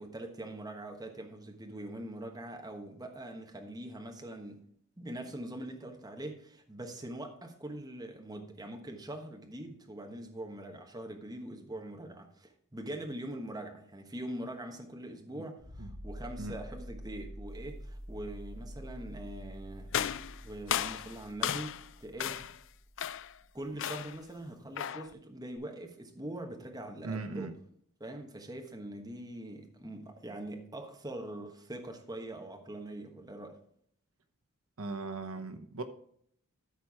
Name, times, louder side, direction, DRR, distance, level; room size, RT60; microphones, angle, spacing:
voice 1, 0.0-4.6 5.0-20.2 20.4-22.5 23.5-27.5 28.0-33.6, right 1 dB, 15° right, 1.2 m, -43 dB
sound 1, 15.6-24.0 25.6-25.7, equal, 50° right, 4.3 m, -47 dB
sound 2, 19.9-21.9 22.2-22.6 23.0-23.4 23.8-24.2 24.8-25.1, left 10 dB, 60° left, 0.4 m, -35 dB
voice 2, 27.0-27.5 34.8-35.8, right 3 dB, 75° right, 0.9 m, -38 dB
13.0 x 4.5 x 4.8 m
head